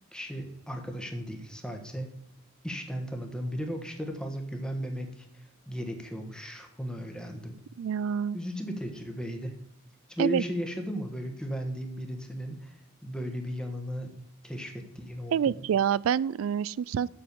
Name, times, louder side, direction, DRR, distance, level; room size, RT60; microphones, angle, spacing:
voice 1, 0.1-2.1 2.6-5.3 5.7-7.6 8.3-9.6 10.1-14.1 14.4-15.5, equal, 5° left, 4 dB, 1.3 m, -35 dB
voice 2, 7.8-8.4 10.2-10.4 15.3-17.1, right 8 dB, 75° right, 22 dB, 0.3 m, -27 dB
7.6 x 6.3 x 6.8 m, 0.80 s
head